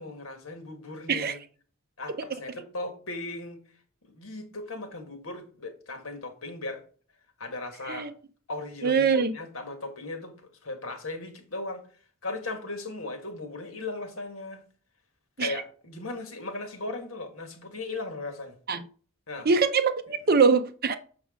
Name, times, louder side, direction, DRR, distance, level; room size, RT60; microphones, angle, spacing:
voice 1, 0.0-1.4 2.0-3.6 4.0-6.8 7.4-8.1 8.5-10.3 10.6-11.8 12.2-14.6 15.4-18.6 19.3-19.5, left 2 dB, 70° left, 1.8 m, -37 dB
voice 2, 8.8-9.3 15.4-15.6 18.7-18.8 19.4-21.0, right 5 dB, 45° right, 0.7 m, -23 dB
6.7 x 6.1 x 3.7 m
head